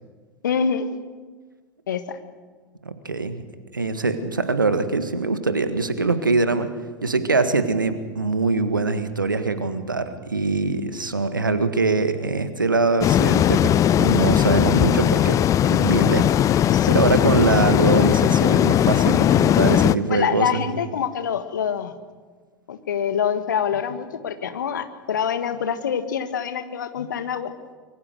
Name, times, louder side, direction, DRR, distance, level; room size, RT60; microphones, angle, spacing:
voice 1, 0.4-0.9 1.9-2.2 16.6-16.9 20.1-21.9 22.7-27.5, left 7 dB, 70° left, 10 dB, 1.6 m, -25 dB
voice 2, 2.9-3.4 3.7-6.7 7.0-15.4 15.6-20.8, right 3 dB, 85° right, 11 dB, 1.7 m, -23 dB
sound 1, 13.0-20.0, left 11 dB, 30° left, 0.7 m, -18 dB
25.0 x 23.5 x 6.6 m, 1.4 s
figure-of-eight pair, 80°, 11 cm